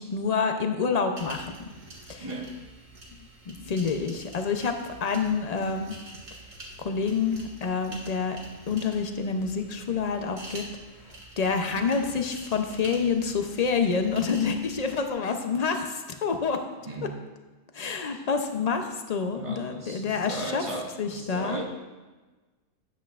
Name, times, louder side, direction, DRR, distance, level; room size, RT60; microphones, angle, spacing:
voice 1, 0.0-1.7 2.1-2.3 3.5-4.8 5.0-6.0 6.8-8.4 8.7-10.6 11.4-16.6 17.0-17.1 17.7-20.6 21.0-21.6, left 5 dB, 45° left, 6 dB, 0.5 m, -27 dB
sound 1, 1.1-15.1, right 1 dB, 90° right, 2.1 m, -46 dB
voice 2, 2.2-2.5 16.9-17.2 18.1-18.2 19.3-21.6, right 2 dB, 25° right, 0 dB, 1.0 m, -36 dB
10.0 x 8.1 x 2.4 m, 1.2 s
omnidirectional pair, 1.3 m